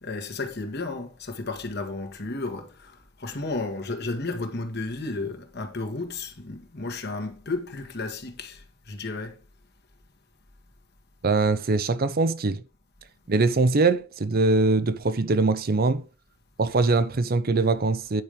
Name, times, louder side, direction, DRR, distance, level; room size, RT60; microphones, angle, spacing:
voice 1, 0.0-9.4, left 3 dB, 55° left, 1.8 m, -33 dB
voice 2, 11.2-12.6 13.3-16.0 16.6-18.2, right 3 dB, 50° right, 0.7 m, -22 dB
9.6 x 5.1 x 5.2 m
head